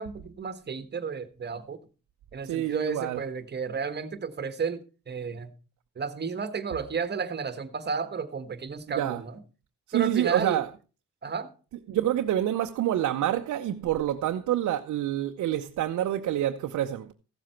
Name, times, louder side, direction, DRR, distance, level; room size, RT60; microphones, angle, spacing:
voice 1, 0.0-1.8 2.3-5.5 5.9-9.4 9.9-10.6 11.2-11.5, right 5 dB, 35° right, 1.4 m, -32 dB
voice 2, 2.4-3.2 9.0-9.2 9.9-10.7 11.9-17.1, right 12 dB, 70° right, 0.8 m, -27 dB
15.0 x 7.6 x 4.4 m
cardioid pair, 90°, 30 cm